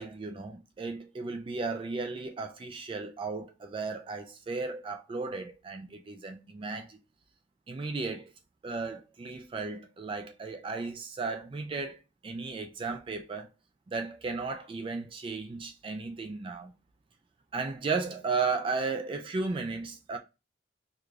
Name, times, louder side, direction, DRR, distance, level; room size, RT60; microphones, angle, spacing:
voice 1, 0.0-7.0 7.7-8.3 8.6-13.5 13.9-16.7 17.5-20.2, right 4 dB, 30° right, 0.3 m, -35 dB
4.7 x 2.5 x 2.3 m
head